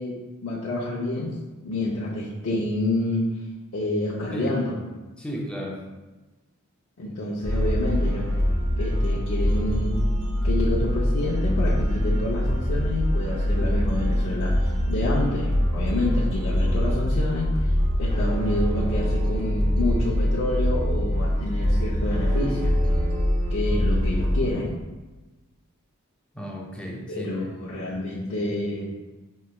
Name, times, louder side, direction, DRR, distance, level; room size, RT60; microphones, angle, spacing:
voice 1, 0.0-3.3 3.7-4.7 7.0-8.3 8.8-10.0 10.4-17.7 18.0-22.8 23.5-24.7 27.1-28.9, left 1 dB, 60° left, -7 dB, 0.6 m, -28 dB
voice 2, 5.2-5.9 26.3-27.4, equal, 5° left, -2 dB, 0.4 m, -34 dB
sound 1, 7.4-24.5, equal, 80° right, 0.6 m, -24 dB
sound 2, 16.5-23.3, equal, 20° left, 0.8 m, -35 dB
5.3 x 3.0 x 2.2 m, 1.1 s
head